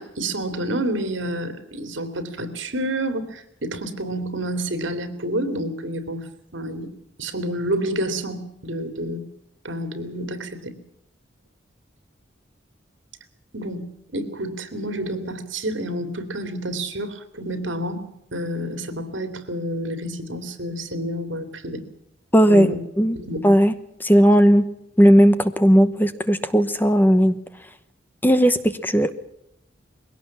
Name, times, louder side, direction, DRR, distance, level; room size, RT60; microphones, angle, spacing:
voice 1, 0.0-6.3 6.5-9.3 9.6-10.8 13.5-21.8 22.5-22.8 23.1-23.4, right 1 dB, 85° right, 9 dB, 2.8 m, -29 dB
voice 2, 22.3-23.2 23.4-23.7 24.0-27.4 28.2-29.1, equal, 10° left, 11 dB, 1.0 m, -16 dB
21.5 x 17.5 x 7.3 m, 0.80 s
head